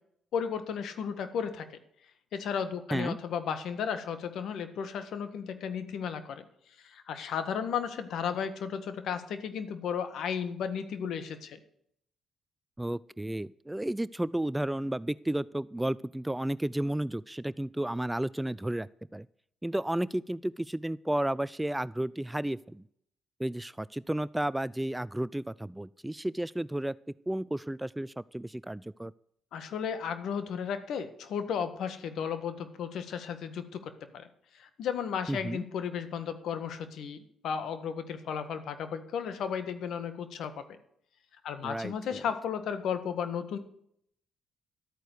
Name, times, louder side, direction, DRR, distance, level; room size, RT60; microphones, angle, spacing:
voice 1, 0.3-1.7 2.3-6.4 6.8-11.6 29.5-34.3 34.5-40.8 41.4-43.6, left 7 dB, 70° left, 9 dB, 1.7 m, -34 dB
voice 2, 12.8-19.3 19.6-22.8 23.4-26.9 27.3-29.1 35.3-35.6 41.6-42.2, right 1 dB, 10° right, 20 dB, 0.4 m, -32 dB
12.5 x 9.1 x 6.8 m, 0.69 s
supercardioid pair, 70°, 0 cm